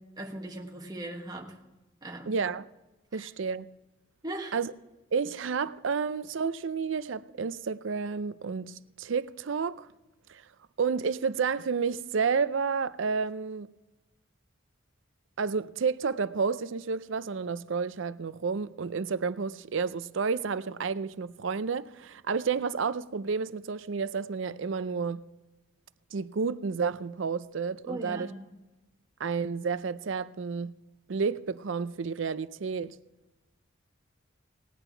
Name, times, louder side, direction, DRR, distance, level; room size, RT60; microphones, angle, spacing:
voice 1, 0.2-1.6 2.0-2.4 3.1-3.3 4.2-4.6 27.9-28.4, right 1 dB, 20° right, 1.3 m, -39 dB
voice 2, 2.3-2.7 3.1-3.7 4.5-4.7 5.1-9.9 10.3-10.4 10.8-13.7 15.4-25.2 26.1-28.3 29.2-30.7 31.1-33.0, right 5 dB, 70° right, 0.5 m, -30 dB
18.5 x 8.9 x 4.5 m
head